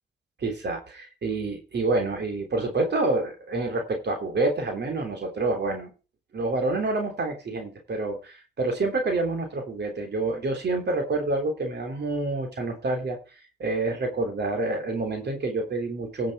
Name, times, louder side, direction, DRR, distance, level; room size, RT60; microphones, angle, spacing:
voice 1, 0.4-5.9 6.3-13.2 13.6-16.3, right 2 dB, 65° right, 4 dB, 3.3 m, -27 dB
16.0 x 7.4 x 4.8 m, 0.34 s
supercardioid pair, 50°, 19 cm